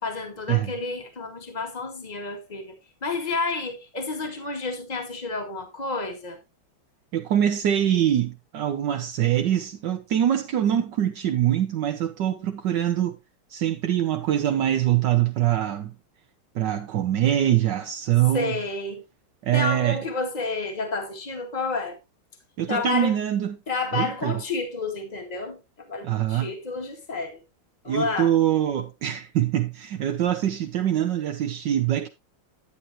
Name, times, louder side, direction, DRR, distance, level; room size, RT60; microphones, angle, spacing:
voice 1, 0.0-2.7 3.0-6.4 18.3-19.0 19.5-22.0 22.7-23.2 23.7-27.4 27.8-28.3, left 3 dB, 20° left, 1.9 m, -30 dB
voice 2, 7.1-13.2 13.5-15.9 16.5-18.6 19.4-20.0 22.6-23.6 23.9-24.4 26.0-26.5 27.9-32.1, right 11 dB, 70° right, 1.4 m, -24 dB
10.0 x 9.5 x 2.7 m
omnidirectional pair, 2.1 m